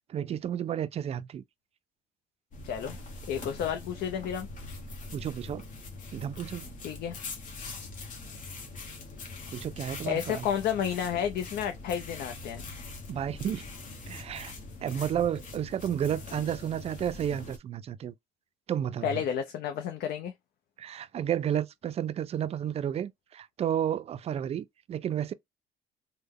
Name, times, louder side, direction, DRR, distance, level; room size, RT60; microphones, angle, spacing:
voice 1, 0.1-1.4 5.1-5.6 6.1-6.7 9.5-10.5 13.1-13.7 14.1-14.5 14.8-18.1 18.7-19.3 20.8-25.3, right 9 dB, 40° right, 0.4 m, -32 dB
sound 1, 2.5-17.6, left 3 dB, 50° left, 1.0 m, -43 dB
voice 2, 2.6-3.0 3.3-4.5 6.8-7.2 10.1-12.7 19.0-20.3, left 8 dB, 70° left, 0.6 m, -31 dB
3.3 x 2.1 x 3.5 m
cardioid pair, 110°, 17 cm